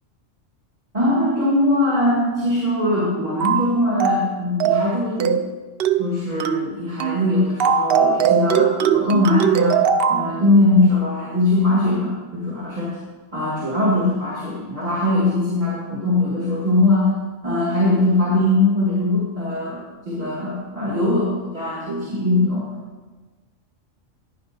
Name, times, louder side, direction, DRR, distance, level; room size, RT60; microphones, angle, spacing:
voice 1, 0.9-5.3 6.0-13.0 13.3-17.1 17.4-19.8 20.0-22.7, left 2 dB, 30° right, -7 dB, 2.7 m, -21 dB
sound 1, 3.4-3.7 4.0-4.3 4.6-4.9 5.2-5.5 5.8-6.1 6.4-6.7 7.0-7.2 7.6-10.3, right 7 dB, 60° right, 0.7 m, -19 dB
14.5 x 10.5 x 2.6 m, 1.3 s
omnidirectional pair, 1.3 m